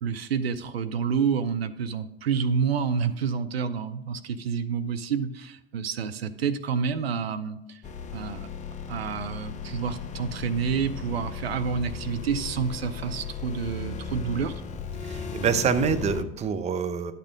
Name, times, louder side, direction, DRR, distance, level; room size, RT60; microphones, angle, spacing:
voice 1, 0.0-7.8 8.1-8.5 8.9-14.6, right 6 dB, 75° right, 12 dB, 0.6 m, -29 dB
sound 1, 7.8-16.2, left 6 dB, 25° left, 0.7 m, -36 dB
voice 2, 15.0-17.1, right 6 dB, 20° right, 9 dB, 0.7 m, -26 dB
11.5 x 6.7 x 3.7 m, 0.90 s
figure-of-eight pair, 75°, 31 cm